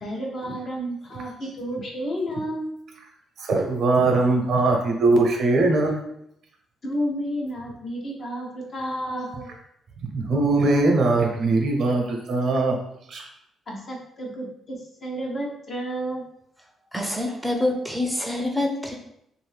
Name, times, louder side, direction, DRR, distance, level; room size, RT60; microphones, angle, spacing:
voice 1, 0.0-2.7 6.8-9.5 13.7-16.2, equal, 45° left, -2 dB, 0.8 m, -31 dB
voice 2, 3.4-6.0 10.1-12.7 13.1-13.3, right 3 dB, 65° right, 1 dB, 0.7 m, -21 dB
voice 3, 16.9-19.0, left 1 dB, ahead, 1 dB, 0.6 m, -26 dB
2.7 x 2.6 x 3.3 m, 0.75 s
cardioid pair, 90°, 0 cm